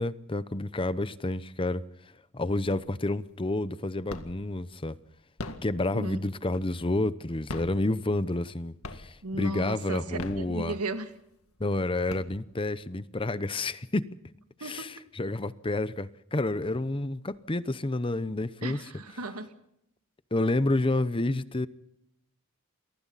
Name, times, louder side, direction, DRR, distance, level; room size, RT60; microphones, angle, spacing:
voice 1, 0.0-1.8 2.3-5.0 5.6-10.8 11.6-14.1 14.6-18.8 20.3-21.7, left 2 dB, 25° left, 0.8 m, -29 dB
sound 1, 2.7-3.2 3.5-4.6 5.2-7.0 7.4-8.5 8.8-9.4 10.0-11.0 11.5-11.6 11.9-12.8, left 2 dB, 70° left, 2.0 m, -41 dB
voice 2, 9.2-11.1 14.6-14.9 18.6-19.5, right 2 dB, 85° right, 2.3 m, -35 dB
28.5 x 22.5 x 4.1 m
head